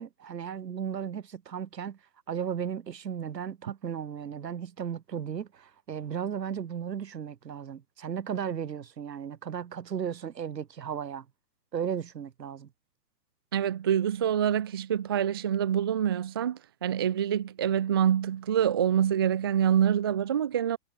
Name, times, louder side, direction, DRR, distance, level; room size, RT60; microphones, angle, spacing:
voice 1, 0.0-2.0 2.3-11.3 11.7-12.7, right 8 dB, 85° right, 8.0 m, -35 dB
voice 2, 13.5-20.8, right 9 dB, 15° right, 0.6 m, -26 dB
hypercardioid pair, 175°, 48 cm